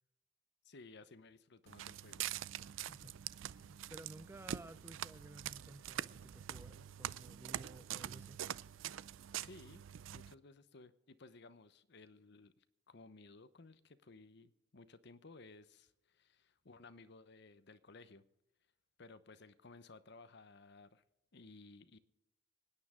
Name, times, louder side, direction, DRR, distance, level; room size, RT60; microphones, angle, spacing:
voice 1, 0.6-2.2 9.4-9.8 10.1-18.2 19.0-21.0 21.3-22.0, left 3 dB, 60° left, 0.9 m, -58 dB
Walk footsteps, 1.7-10.3, right 11 dB, 75° right, 0.4 m, -45 dB
voice 2, 2.5-8.4, right 1 dB, 15° right, 0.4 m, -56 dB
25.5 x 9.6 x 3.7 m
head